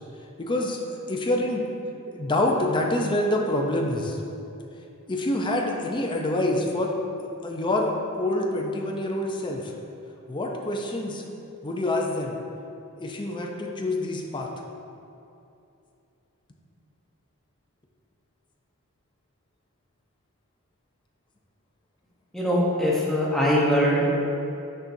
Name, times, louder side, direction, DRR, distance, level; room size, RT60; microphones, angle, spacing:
voice 1, 0.4-1.7 2.1-4.2 5.1-6.9 7.4-9.7 10.3-11.2 11.6-12.4 13.0-14.5, left 1 dB, 20° left, 0 dB, 0.5 m, -26 dB
voice 2, 22.3-24.1, equal, ahead, -6 dB, 0.9 m, -22 dB
6.5 x 5.9 x 2.7 m, 2.7 s
head